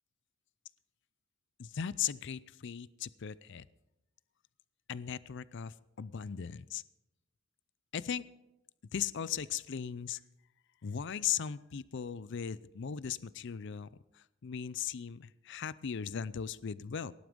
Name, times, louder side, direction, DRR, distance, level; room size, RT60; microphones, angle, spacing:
voice 1, 1.6-3.6 4.9-6.8 7.9-8.2 8.9-10.2 10.8-13.9 14.1-17.1, left 8 dB, 60° left, 18 dB, 0.5 m, -38 dB
17.5 x 11.5 x 5.3 m, 0.89 s
head